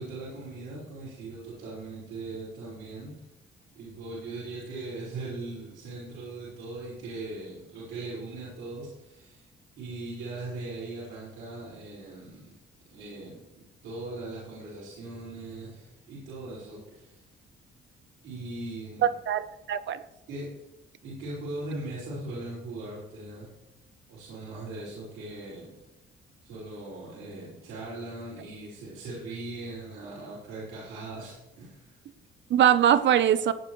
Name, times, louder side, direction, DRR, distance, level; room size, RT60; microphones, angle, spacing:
voice 1, 0.0-3.1 3.7-9.4 9.8-12.5 12.9-13.4 13.8-17.2 18.2-19.1 20.3-20.5 21.0-23.5 24.1-25.7 26.4-31.9, right 2 dB, 90° right, -8 dB, 5.4 m, -39 dB
voice 2, 19.0-20.0 32.5-33.5, right 10 dB, 65° right, 14 dB, 0.9 m, -22 dB
17.0 x 10.0 x 3.2 m, 0.96 s
cardioid pair, 90°, 20 cm